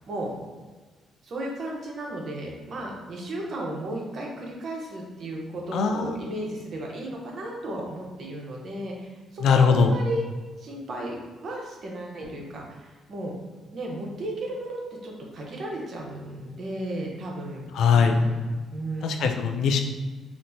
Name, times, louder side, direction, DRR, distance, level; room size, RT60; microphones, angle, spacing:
voice 1, 1.2-10.2 10.6-13.3 13.7-17.7 17.9-18.3 18.7-19.3, right 1 dB, 55° right, -1 dB, 0.8 m, -34 dB
voice 2, 5.7-6.3 9.4-10.0 17.7-18.2 19.0-19.8, left 5 dB, 75° left, 4 dB, 0.3 m, -21 dB
4.1 x 2.1 x 2.6 m, 1.3 s
cardioid pair, 90°, 0 cm